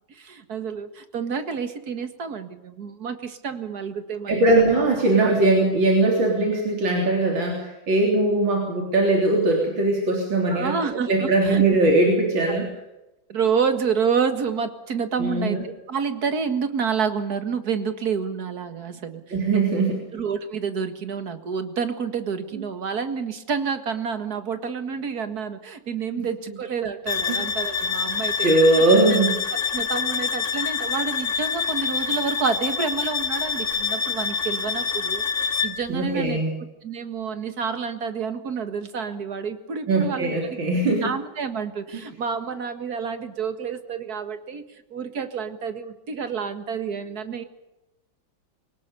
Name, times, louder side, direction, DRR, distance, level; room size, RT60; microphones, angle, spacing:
voice 1, 0.1-4.8 5.2-5.3 10.5-11.6 12.5-12.7 13.3-19.8 20.1-29.2 29.5-36.4 36.8-40.6 40.8-44.6 44.9-47.4, right 6 dB, 50° right, 9 dB, 2.1 m, -29 dB
voice 2, 4.3-10.7 11.1-12.7 15.2-15.6 19.3-20.0 22.5-22.6 26.2-26.3 27.3-27.5 28.4-29.3 35.9-36.5 39.9-41.1, right 2 dB, 75° right, 0 dB, 4.3 m, -20 dB
sound 1, 27.1-35.9, left 6 dB, 40° left, 2.3 m, -26 dB
23.0 x 19.0 x 6.9 m, 0.95 s
omnidirectional pair, 2.1 m